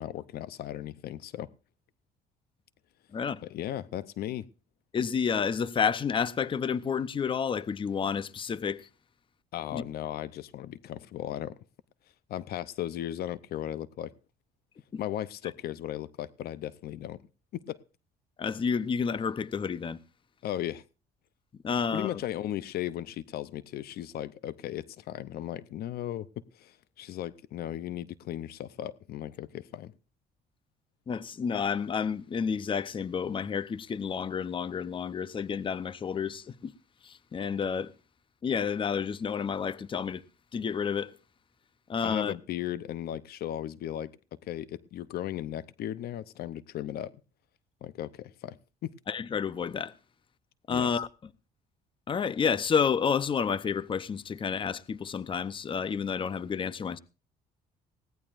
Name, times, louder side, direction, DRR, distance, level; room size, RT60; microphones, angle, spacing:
voice 1, 0.0-1.5 3.4-4.5 9.5-11.6 12.3-14.1 15.0-17.2 17.5-17.8 20.4-20.8 21.9-26.3 26.5-29.9 42.0-47.1 47.8-48.9 50.7-50.9, left 12 dB, 65° left, 0.7 m, -36 dB
voice 2, 4.9-8.9 9.7-9.8 14.9-15.0 18.4-20.0 21.6-22.2 31.1-36.7 37.0-37.9 38.4-40.2 40.5-41.2 41.9-42.4 49.1-49.9 50.7-51.1 52.1-57.0, left 6 dB, 30° left, 0.7 m, -30 dB
20.0 x 17.0 x 2.5 m
cardioid pair, 110°, 17 cm